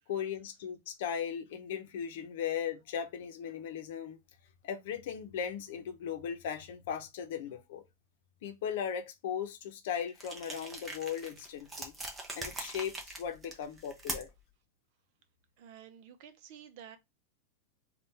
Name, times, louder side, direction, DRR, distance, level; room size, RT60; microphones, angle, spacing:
voice 1, 0.1-4.2 4.6-7.8 8.4-12.0 12.3-14.3, left 8 dB, 65° left, 0.8 m, -37 dB
sound 1, 10.2-14.5, right 2 dB, 10° right, 0.8 m, -42 dB
voice 2, 15.6-17.0, right 9 dB, 50° right, 0.7 m, -51 dB
3.7 x 2.4 x 4.1 m
supercardioid pair, 165°, 0 cm